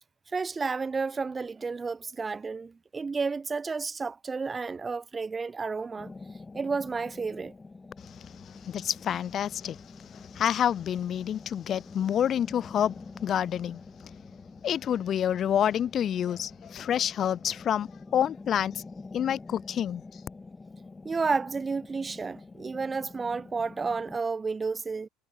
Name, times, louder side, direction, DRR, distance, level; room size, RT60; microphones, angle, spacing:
voice 1, 0.3-6.1 6.5-7.5 21.0-25.1, right 4 dB, 25° right, 0.5 m, -31 dB
sound 1, 6.0-24.2, left 3 dB, 15° left, 1.6 m, -47 dB
voice 2, 8.0-14.1 14.6-18.8 19.1-20.0, left 9 dB, 45° left, 1.1 m, -28 dB
hypercardioid pair, 85°, 0 cm